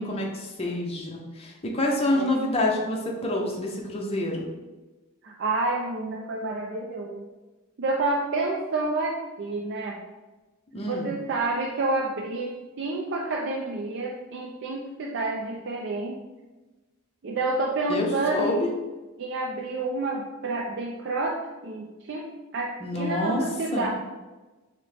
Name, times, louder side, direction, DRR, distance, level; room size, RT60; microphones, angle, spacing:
voice 1, 0.0-4.5 10.7-11.1 17.9-18.7 22.8-23.4 23.7-23.9, left 1 dB, 30° left, -1 dB, 0.7 m, -27 dB
voice 2, 5.2-7.3 7.8-10.0 10.9-16.2 17.2-18.6 19.2-23.9, right 2 dB, 55° right, -1 dB, 0.4 m, -29 dB
6.0 x 2.1 x 3.3 m, 1.2 s
head